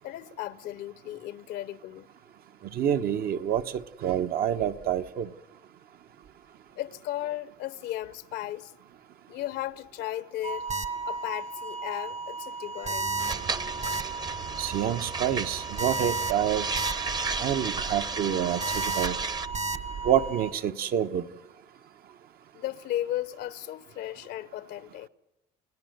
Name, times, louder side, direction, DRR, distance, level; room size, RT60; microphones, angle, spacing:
voice 1, 0.0-2.1 6.8-8.7 9.3-10.7 11.1-13.1 22.5-25.1, left 13 dB, 80° left, 0.8 m, -35 dB
voice 2, 2.7-3.6 4.0-5.3 14.6-16.7 17.4-19.2 20.0-21.2, right 10 dB, 65° right, 1.1 m, -27 dB
sound 1, 10.4-20.5, right 4 dB, 40° right, 1.3 m, -34 dB
sound 2, 13.0-20.3, right 6 dB, 85° right, 5.5 m, -43 dB
sound 3, 13.2-19.5, right 4 dB, 25° right, 0.8 m, -34 dB
29.5 x 17.5 x 8.0 m
cardioid pair, 110°, 17 cm